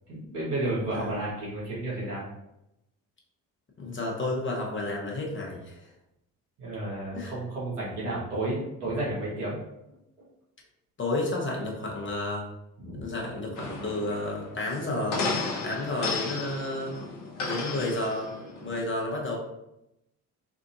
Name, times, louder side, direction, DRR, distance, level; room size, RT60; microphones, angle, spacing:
voice 1, 0.1-2.3 6.6-9.6 9.9-10.0 12.8-13.0, right 2 dB, 90° right, -7 dB, 1.1 m, -32 dB
voice 2, 0.9-1.2 3.8-5.9 7.1-7.3 11.0-12.4 13.0-15.2 15.6-17.0 17.4-18.3 18.6-19.4, left 2 dB, 25° left, -2 dB, 1.0 m, -31 dB
sound 1, 13.5-18.8, left 3 dB, 65° left, 0.8 m, -34 dB
3.6 x 2.5 x 2.4 m, 0.87 s
figure-of-eight pair, 45°, 45 cm